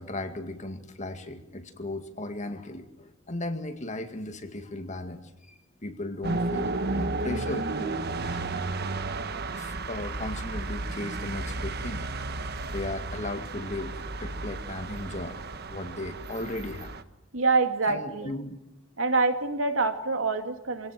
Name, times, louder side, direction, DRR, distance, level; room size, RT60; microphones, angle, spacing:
voice 1, 0.0-5.5 5.8-8.9 9.6-12.3 12.7-15.4 15.7-16.9 17.9-18.6, left 2 dB, 35° left, 7 dB, 2.2 m, -36 dB
sound 1, 6.2-17.0, right 3 dB, 55° right, 1.3 m, -33 dB
voice 2, 17.3-18.3 19.0-20.9, right 3 dB, 80° right, 6 dB, 2.5 m, -26 dB
26.0 x 18.0 x 9.1 m, 0.89 s
head